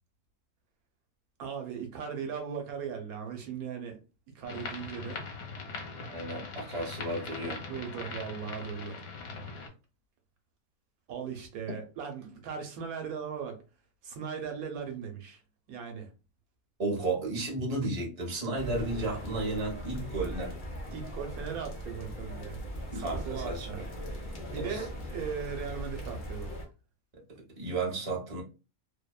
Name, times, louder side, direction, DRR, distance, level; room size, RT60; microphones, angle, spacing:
voice 1, 1.4-4.0 4.3-5.3 7.7-9.0 11.1-13.6 14.0-15.4 15.7-16.1 20.9-22.6 22.9-23.8 24.5-26.6, right 7 dB, 80° right, 1.1 m, -38 dB
sound 1, 4.4-9.7, left 4 dB, 75° left, 1.2 m, -41 dB
voice 2, 6.0-7.6 16.8-20.5 22.9-23.9 24.5-24.8 27.6-28.4, right 2 dB, 30° right, 0.7 m, -33 dB
sound 2, 18.5-26.7, equal, 45° left, 0.7 m, -39 dB
2.7 x 2.0 x 2.3 m
omnidirectional pair, 1.6 m